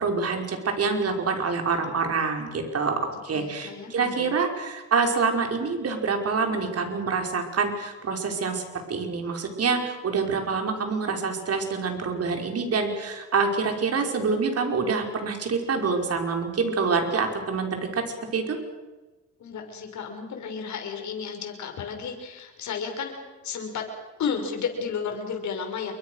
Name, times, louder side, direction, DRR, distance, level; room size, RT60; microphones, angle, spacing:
voice 1, 0.0-18.0 18.3-18.6, right 4 dB, 55° right, 4 dB, 5.6 m, -26 dB
voice 2, 3.3-4.3 19.4-23.1 23.4-23.9 24.2-26.0, left 6 dB, 70° left, 4 dB, 6.4 m, -33 dB
28.5 x 23.5 x 6.7 m, 1.2 s
cardioid pair, 90°, 30 cm